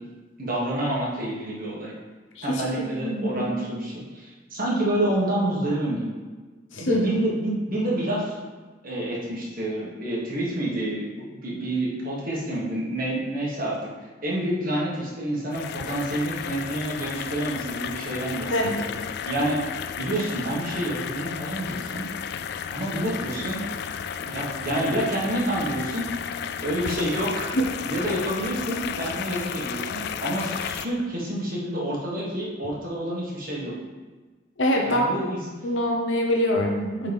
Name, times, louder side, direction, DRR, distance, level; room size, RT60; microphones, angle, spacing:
voice 1, 0.4-1.9 2.4-6.2 6.8-8.4 8.8-13.8 14.2-18.8 19.3-19.6 20.0-22.1 22.7-23.6 24.2-26.1 26.6-27.5 27.8-33.7 34.8-35.4, right 1 dB, 50° right, -4 dB, 1.6 m, -28 dB
voice 2, 2.4-3.5 6.7-7.1 18.5-18.8 27.5-27.6 34.6-35.1 35.6-37.1, equal, 80° left, 0 dB, 1.0 m, -24 dB
sound 1, 15.5-30.8, left 8 dB, 60° left, 0.3 m, -33 dB
8.1 x 4.2 x 3.5 m, 1.3 s
head